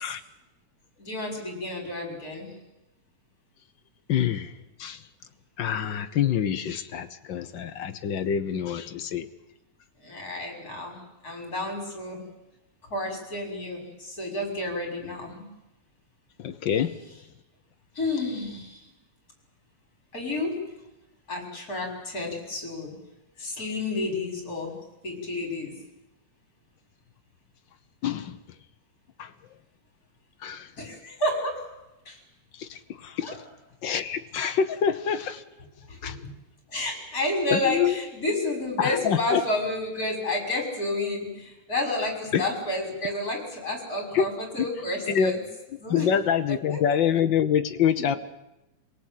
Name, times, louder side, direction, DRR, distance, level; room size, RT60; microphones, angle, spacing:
voice 1, 1.0-2.5 10.0-12.3 12.9-15.5 17.9-18.8 20.1-20.6 21.3-22.9 23.4-24.8 25.0-25.7 30.8-31.6 32.1-32.2 33.2-33.4 35.9-36.3 36.7-45.4 45.8-46.1 46.5-46.8, left 2 dB, 30° left, 3 dB, 6.2 m, -30 dB
voice 2, 4.1-4.5 4.8-5.0 5.6-9.3 16.4-17.0 28.0-28.4 29.2-29.3 30.4-30.7 32.6-33.4 33.8-35.4 36.0-36.2 37.5-38.0 38.8-39.4 42.3-42.4 44.1-44.3 45.1-45.4 45.9-48.2, left 8 dB, 65° left, 10 dB, 1.2 m, -26 dB
27.5 x 18.0 x 9.3 m, 0.94 s
omnidirectional pair, 3.3 m